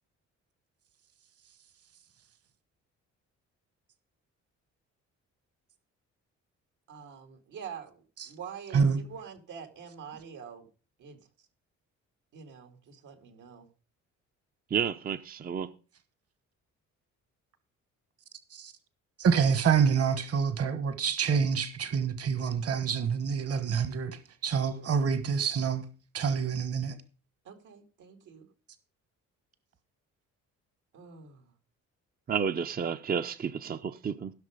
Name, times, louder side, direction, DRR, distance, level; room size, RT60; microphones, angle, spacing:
voice 1, 6.9-10.7 11.0-11.2 12.3-13.7 24.7-24.9 27.4-28.5 30.9-31.5, right 7 dB, 85° right, 2.5 m, -46 dB
voice 2, 14.7-15.7 32.3-34.3, right 7 dB, 30° right, 0.6 m, -31 dB
voice 3, 19.2-25.8 26.1-26.9, right 6 dB, 50° right, 1.4 m, -27 dB
16.0 x 6.2 x 5.1 m
cardioid pair, 90°, 30 cm